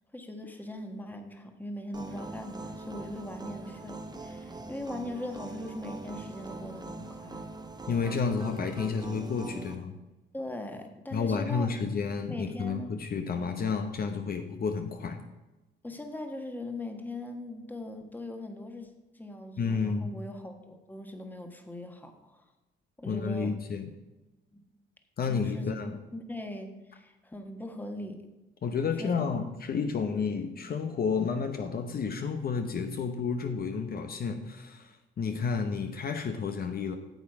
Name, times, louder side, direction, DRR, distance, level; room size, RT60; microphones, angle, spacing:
voice 1, 0.1-7.4 10.3-11.7 12.3-12.9 15.8-18.9 19.1-22.4 23.0-23.6 24.5-24.6 25.3-25.8 26.1-28.2 29.0-29.1 29.4-29.5, left 1 dB, 10° left, 4 dB, 1.3 m, -40 dB
sound 1, 1.9-9.8, right 2 dB, 20° right, 1.0 m, -42 dB
voice 2, 7.9-10.0 11.1-15.2 19.6-20.1 23.1-23.9 25.2-26.0 28.6-37.0, left 5 dB, 50° left, 6 dB, 0.9 m, -31 dB
9.3 x 7.2 x 4.8 m, 1.0 s
cardioid pair, 90°, 20 cm